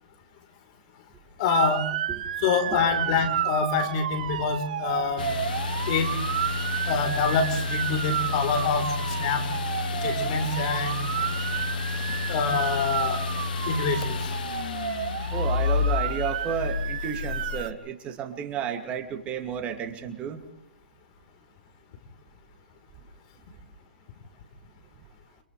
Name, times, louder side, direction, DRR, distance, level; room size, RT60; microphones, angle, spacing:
voice 1, 1.4-1.9 2.4-5.3 5.9-6.1 6.9-9.4 10.0-11.1 12.3-13.2 13.7-14.3, left 5 dB, 50° left, 7 dB, 4.2 m, -26 dB
Motor vehicle (road) / Siren, 1.5-17.7, right 10 dB, 60° right, 2.1 m, -32 dB
sound 1, 5.2-17.7, left 5 dB, 70° left, 1.0 m, -30 dB
voice 2, 15.3-20.4, right 8 dB, 25° right, 5 dB, 2.6 m, -32 dB
30.0 x 26.5 x 3.4 m, 0.70 s
hypercardioid pair, 135°, 5 cm